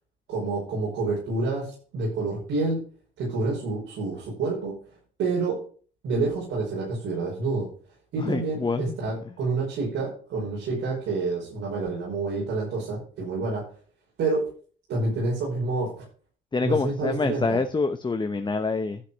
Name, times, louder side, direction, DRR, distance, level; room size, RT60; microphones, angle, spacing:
voice 1, 0.3-2.8 3.2-4.7 5.2-5.6 6.0-7.7 8.1-13.6 14.2-14.5 14.9-15.9 16.6-17.6, right 3 dB, 85° right, -5 dB, 5.7 m, -28 dB
voice 2, 8.2-9.0 16.5-19.0, left 3 dB, 25° left, 8 dB, 0.9 m, -26 dB
12.0 x 5.0 x 7.2 m, 0.43 s
cardioid pair, 90°, 20 cm